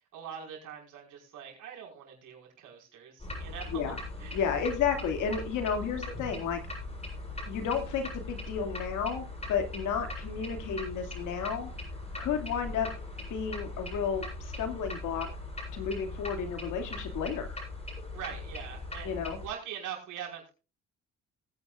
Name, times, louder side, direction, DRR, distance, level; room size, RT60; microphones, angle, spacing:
voice 1, 0.1-3.8 4.2-4.4 18.1-20.5, right 9 dB, 80° right, 0 dB, 5.2 m, -43 dB
sound 1, 3.2-19.5, left 2 dB, 20° left, 7.5 m, -40 dB
voice 2, 4.3-6.6 7.5-11.7 12.2-12.9 13.3-15.3 15.7-17.6 19.0-19.4, left 7 dB, 85° left, 5 dB, 2.5 m, -32 dB
19.5 x 9.7 x 2.5 m, 0.32 s
cardioid pair, 90°, 30 cm